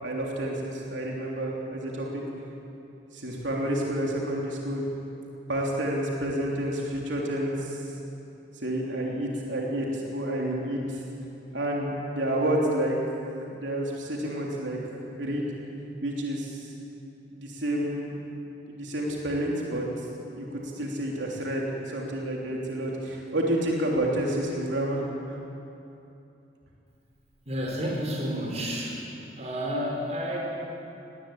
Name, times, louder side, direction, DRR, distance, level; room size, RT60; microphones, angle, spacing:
voice 1, 0.0-2.2 3.1-4.8 5.5-7.8 8.5-11.0 11.5-13.0 13.5-14.8 15.2-15.5 16.0-16.7 17.3-18.1 18.7-19.9 20.4-25.0, right 1 dB, 90° right, -2 dB, 3.3 m, -29 dB
voice 2, 27.5-29.1 29.4-30.4, equal, 40° right, -2 dB, 5.1 m, -30 dB
19.5 x 19.0 x 8.9 m, 2.8 s
head